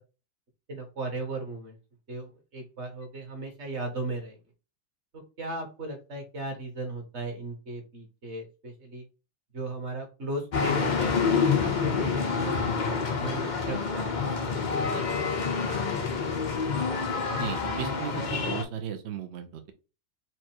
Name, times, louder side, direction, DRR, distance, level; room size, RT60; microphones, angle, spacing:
voice 1, 0.7-1.8 2.1-4.4 5.4-9.0 9.5-14.0, right 2 dB, 45° right, 3 dB, 1.5 m, -36 dB
sound 1, 10.5-18.6, left 5 dB, 80° left, 0.4 m, -27 dB
voice 2, 17.3-19.7, right 9 dB, 75° right, 5 dB, 0.6 m, -36 dB
4.6 x 2.4 x 4.4 m, 0.31 s
omnidirectional pair, 1.9 m